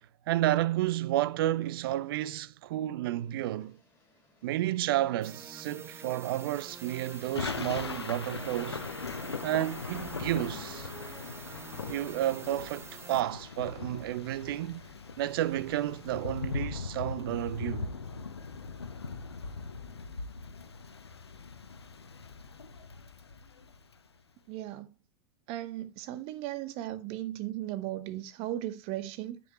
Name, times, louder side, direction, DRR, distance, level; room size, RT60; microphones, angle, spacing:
voice 1, 0.3-3.8 4.4-8.8 9.4-10.9 11.9-14.8 15.2-18.0, right 14 dB, 60° right, 0.4 m, -31 dB
sound 1, 3.1-17.6, left 2 dB, 15° left, 3.4 m, -65 dB
sound 2, 5.2-13.2, right 6 dB, 20° right, 0.6 m, -47 dB
Thunder / Rain, 6.5-24.0, left 4 dB, 85° left, 0.7 m, -40 dB
voice 2, 24.5-24.9 25.5-29.4, right 14 dB, 45° right, 0.8 m, -36 dB
9.3 x 5.4 x 3.0 m
figure-of-eight pair, 90°, 13 cm